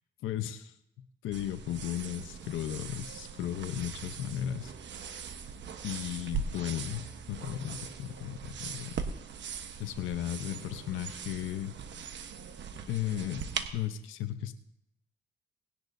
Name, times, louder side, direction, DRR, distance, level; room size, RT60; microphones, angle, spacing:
voice 1, 0.2-0.7 1.2-4.7 5.1-5.2 5.8-9.0 9.8-11.7 12.9-13.4 13.7-14.5, left 11 dB, 85° left, 9 dB, 0.9 m, -35 dB
sound 1, 1.3-13.7, right 6 dB, 65° right, 1.2 m, -41 dB
19.0 x 10.5 x 2.7 m, 0.81 s
cardioid pair, 90°, 20 cm